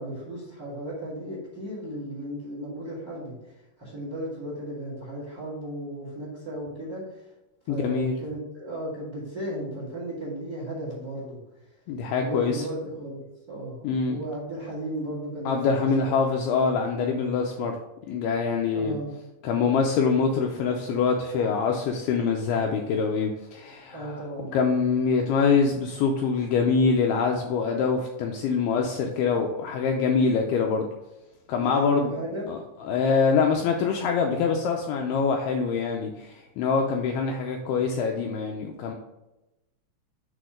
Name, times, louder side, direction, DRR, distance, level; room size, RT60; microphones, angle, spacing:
voice 1, 0.0-3.3 3.8-7.2 7.6-11.4 12.2-13.1 13.5-15.6 16.0-16.1 18.7-19.1 19.6-20.2 23.9-24.5 31.5-32.5, right 1 dB, 30° right, -5 dB, 1.7 m, -35 dB
voice 2, 7.7-8.2 11.9-12.6 13.8-14.2 15.5-17.7 18.1-19.0 19.4-24.2 24.5-30.9 31.5-32.1 32.5-38.9, left 5 dB, 85° left, 2 dB, 2.3 m, -24 dB
8.1 x 3.8 x 5.0 m, 0.98 s
omnidirectional pair, 5.2 m